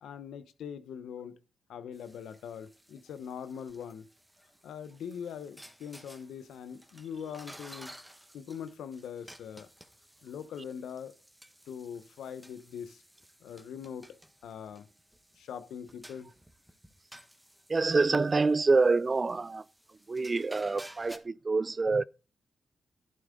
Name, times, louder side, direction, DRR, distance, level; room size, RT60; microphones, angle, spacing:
voice 1, 0.0-1.4 1.7-4.1 4.6-7.9 8.3-9.7 10.2-11.2 11.7-13.0 13.4-14.9 15.4-16.3, left 8 dB, 85° left, 0.9 m, -42 dB
sound 1, 1.9-21.2, equal, 10° right, 1.6 m, -55 dB
voice 2, 17.7-19.6 20.1-22.0, right 3 dB, 40° right, 0.4 m, -26 dB
11.0 x 9.3 x 3.8 m
supercardioid pair, 45°, 0 cm